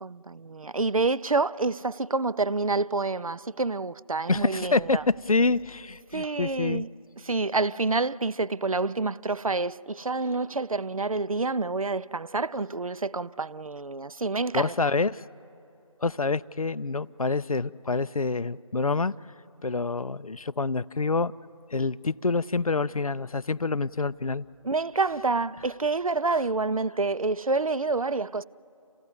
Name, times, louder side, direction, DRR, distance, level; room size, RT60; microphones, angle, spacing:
voice 1, 0.0-5.0 6.1-6.9 7.2-14.9 24.6-28.4, right 3 dB, 75° right, 0.6 m, -28 dB
voice 2, 4.3-6.8 14.5-15.2 16.0-19.1 19.6-21.3 21.7-24.4, left 3 dB, 80° left, 0.5 m, -27 dB
28.0 x 16.0 x 9.6 m
figure-of-eight pair, 160°, 18 cm